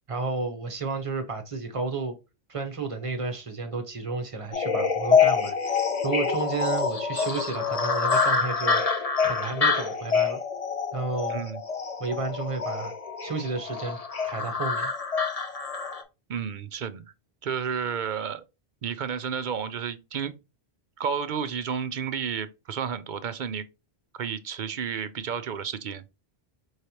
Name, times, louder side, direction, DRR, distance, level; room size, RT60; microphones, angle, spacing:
voice 1, 0.1-2.2 2.5-10.4 10.9-11.4 12.0-12.9 13.2-14.0 14.3-14.9, right 4 dB, 35° right, 1.0 m, -32 dB
sound 1, 4.5-16.0, left 5 dB, 40° left, 0.8 m, -26 dB
voice 2, 11.3-11.6 16.3-17.0 17.4-18.4 18.8-20.3 21.0-23.6 24.2-26.0, right 7 dB, 55° right, 0.6 m, -31 dB
4.7 x 3.2 x 2.7 m
omnidirectional pair, 1.1 m